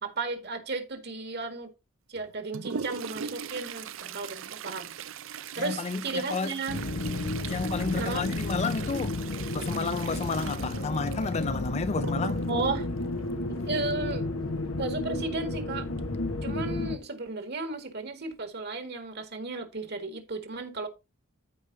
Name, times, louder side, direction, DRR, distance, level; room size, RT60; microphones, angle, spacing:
voice 1, 0.0-1.7 2.1-4.9 5.6-6.8 7.9-8.2 12.5-12.9 13.5-14.3 14.8-15.9 16.4-20.9, right 3 dB, 55° right, 1.9 m, -34 dB
Toilet flush, 2.1-14.1 16.0-16.1 16.4-16.5 17.3-17.4 18.1-18.3 18.7-18.9, right 7 dB, 70° right, 0.5 m, -40 dB
voice 2, 5.6-6.6 7.5-9.2 9.5-12.5, left 4 dB, 30° left, 0.4 m, -31 dB
sound 1, 6.7-17.0, left 2 dB, 90° left, 1.1 m, -32 dB
14.5 x 4.9 x 2.7 m
head